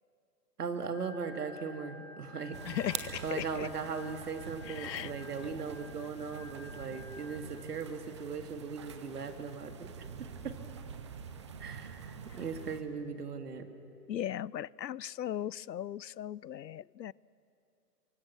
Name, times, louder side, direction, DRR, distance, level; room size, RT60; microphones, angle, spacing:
voice 1, 0.6-2.6 3.2-10.6 11.6-13.7, right 5 dB, 65° right, 7 dB, 2.2 m, -39 dB
Organ, 0.9-7.4, left 2 dB, 5° left, 5.2 m, -52 dB
sound 1, 2.5-12.8, right 6 dB, 20° right, 0.6 m, -45 dB
voice 2, 2.6-3.7 4.6-5.1 12.3-12.4 14.1-17.1, left 10 dB, 85° left, 25 dB, 0.5 m, -37 dB
27.5 x 24.0 x 6.1 m, 2.5 s
figure-of-eight pair, 135°, 50 cm